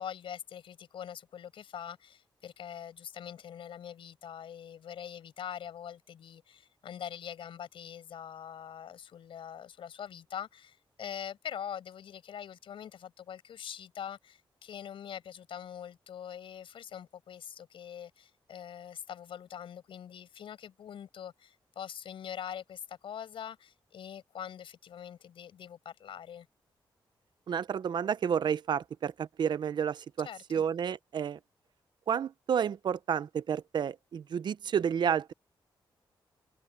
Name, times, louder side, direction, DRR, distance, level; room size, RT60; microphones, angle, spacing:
voice 1, 0.0-26.5 30.2-30.6, left 9 dB, 80° left, 6.2 m, -43 dB
voice 2, 27.5-31.4 32.1-35.3, right 8 dB, 60° right, 0.7 m, -31 dB
wide cardioid pair, 125°, 9 cm